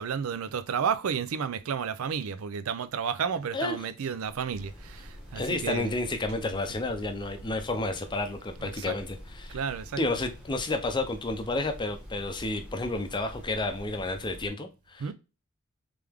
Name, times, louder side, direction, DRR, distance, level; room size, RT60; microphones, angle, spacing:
voice 1, 0.0-5.9 8.6-9.0 9.5-10.0 15.0-15.1, right 7 dB, 75° right, 0.4 m, -32 dB
sound 1, 4.5-14.5, equal, 5° right, 1.2 m, -46 dB
voice 2, 5.3-9.6 10.0-15.0, left 2 dB, 20° left, 0.6 m, -31 dB
3.4 x 3.4 x 3.5 m
head